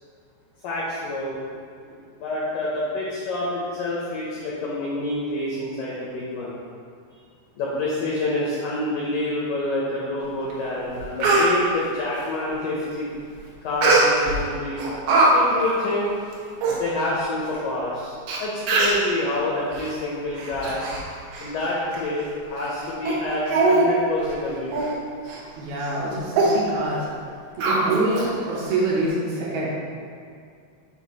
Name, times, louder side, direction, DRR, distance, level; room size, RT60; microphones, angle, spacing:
voice 1, 0.6-1.4 1.8-6.6 7.6-13.1 13.6-14.8 15.2-16.2 16.7-18.1 18.4-20.8 21.4-25.0, left 2 dB, 80° left, -6 dB, 1.9 m, -27 dB
Speech, 10.5-10.6 10.9-11.5 13.8-14.4 14.8-15.3 15.6-15.8 16.3-16.4 16.6-16.8 17.5-17.6 18.3-18.4 18.7-19.1 19.7-19.9 20.4-21.0 21.3-21.5 21.9-22.0 22.6-22.7 23.1-23.2 23.5-23.9 24.2-24.3 24.7-24.9 25.3-25.4 25.8-26.0 26.3-26.5 27.6-28.3 28.7-28.8, right 3 dB, 90° right, 3.4 m, -21 dB
voice 2, 25.6-27.1 27.6-29.7, right 2 dB, 75° right, -5 dB, 2.5 m, -25 dB
8.2 x 2.7 x 5.3 m, 2.3 s
omnidirectional pair, 5.0 m